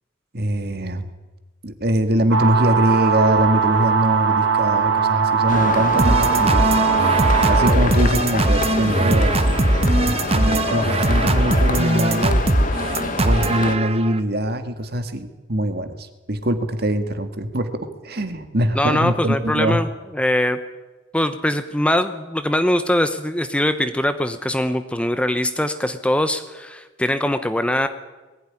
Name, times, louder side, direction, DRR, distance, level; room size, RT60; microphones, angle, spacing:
voice 1, 0.3-1.1 1.6-6.7 7.5-9.3 10.0-12.4 13.2-19.8, right 1 dB, 50° right, 8 dB, 1.9 m, -23 dB
sound 1, 2.3-7.7, right 6 dB, 70° right, 1.9 m, -20 dB
sound 2, 5.5-13.8, left 3 dB, 40° left, 1.3 m, -26 dB
sound 3, 6.0-14.2, right 1 dB, 30° right, 1.1 m, -20 dB
voice 2, 18.8-19.9 20.1-20.6 21.1-27.9, left 1 dB, 5° left, 9 dB, 0.9 m, -22 dB
21.0 x 16.0 x 10.0 m, 1.2 s
head